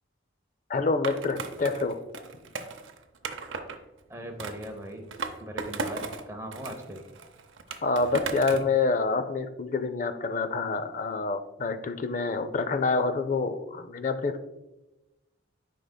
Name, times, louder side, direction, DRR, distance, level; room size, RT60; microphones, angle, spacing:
voice 1, 0.7-2.0 7.8-14.4, left 3 dB, 40° left, 10 dB, 0.4 m, -27 dB
Skateboard, 1.0-3.8 4.4-6.2 6.5-8.7, right 4 dB, 75° right, 0.6 m, -36 dB
voice 2, 4.1-5.1 5.4-7.0, right 1 dB, 15° right, 3 dB, 0.7 m, -39 dB
9.8 x 5.0 x 2.2 m, 1.0 s
head